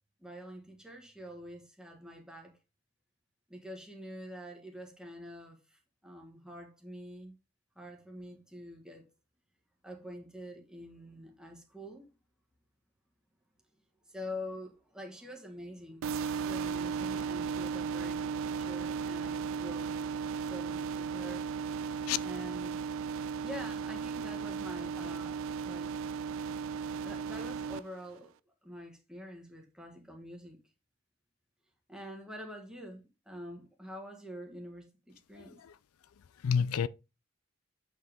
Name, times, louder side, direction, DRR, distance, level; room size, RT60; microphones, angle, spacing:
voice 1, 0.2-2.5 3.5-7.4 7.8-9.1 9.8-12.1 14.1-16.2 16.4-20.1 20.4-21.5 22.2-22.8 23.4-25.9 27.0-28.3 28.6-30.6 31.9-35.6, equal, 5° right, 1.7 m, -46 dB
sound 1, 16.0-27.8, right 6 dB, 65° right, 0.3 m, -35 dB
voice 2, 35.4-35.8 36.2-36.9, left 7 dB, 90° left, 0.4 m, -31 dB
8.2 x 5.1 x 3.5 m
head